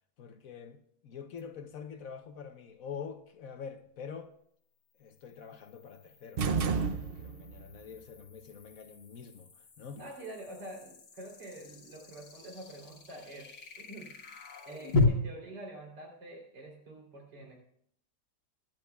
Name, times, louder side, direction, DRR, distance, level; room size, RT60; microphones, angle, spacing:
voice 1, 0.2-4.3 5.0-9.5 9.8-10.0, left 6 dB, 60° left, 1.1 m, -46 dB
sound 1, 1.4-1.5 4.9-15.0, left 3 dB, 90° left, 2.1 m, -39 dB
sound 2, 6.4-7.6, right 5 dB, 70° right, 0.5 m, -30 dB
voice 2, 10.0-14.1 14.7-17.5, right 1 dB, 85° right, 4.1 m, -46 dB
22.5 x 10.5 x 2.3 m
omnidirectional pair, 1.8 m